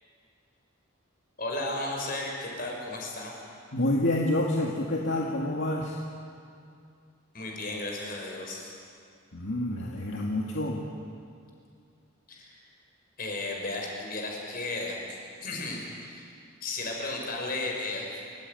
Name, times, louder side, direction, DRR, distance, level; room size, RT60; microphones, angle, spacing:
voice 1, 1.4-3.4 7.3-8.7 12.3-12.6 13.2-16.3 16.6-18.1, left 2 dB, 45° left, 0 dB, 5.5 m, -34 dB
voice 2, 3.7-6.0 9.3-10.8, left 1 dB, 65° left, -2 dB, 2.1 m, -28 dB
28.5 x 15.5 x 9.5 m, 2.3 s
head